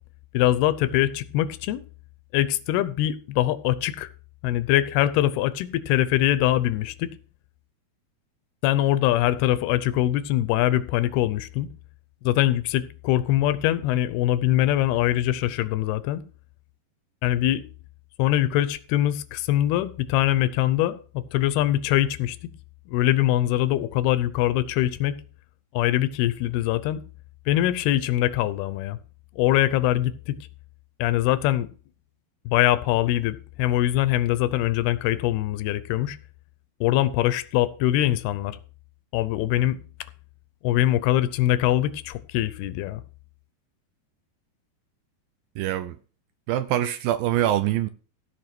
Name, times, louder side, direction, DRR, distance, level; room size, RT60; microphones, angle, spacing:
voice 1, 0.3-1.8 2.3-4.1 4.4-7.1 8.6-11.7 12.2-16.2 17.2-17.6 18.2-22.5 22.9-25.2 25.7-27.0 27.5-29.0 29.4-30.4 31.0-31.7 32.5-36.2 36.8-38.6 39.1-39.8 40.6-43.0, left 13 dB, 80° left, 2.7 m, -23 dB
voice 2, 45.6-46.0 46.5-47.9, right 12 dB, 80° right, 2.2 m, -24 dB
15.5 x 5.1 x 6.0 m
omnidirectional pair, 4.6 m